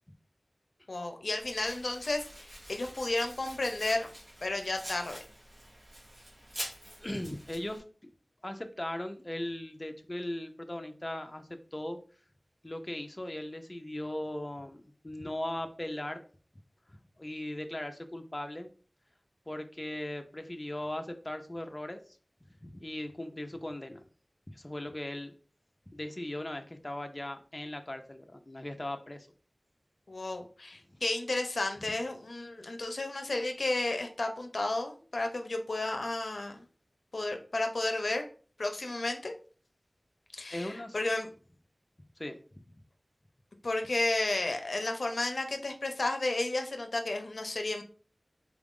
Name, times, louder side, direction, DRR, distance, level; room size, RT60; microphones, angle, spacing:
voice 1, 0.9-4.1 4.4-5.2 30.1-36.6 37.1-38.3 38.6-39.3 40.3-41.3 43.6-47.8, left 2 dB, 90° left, 5 dB, 0.5 m, -32 dB
Domestic sounds home sounds, 1.4-7.8, equal, 45° right, 1.5 m, -46 dB
voice 2, 7.0-7.8 8.4-12.0 12.6-16.2 17.2-18.7 19.5-22.0 22.6-24.0 24.5-25.3 25.9-29.3 40.5-41.0 42.2-42.4, left 1 dB, 35° left, 6 dB, 0.5 m, -38 dB
3.8 x 2.4 x 3.6 m, 0.40 s
wide cardioid pair, 45°, 0 cm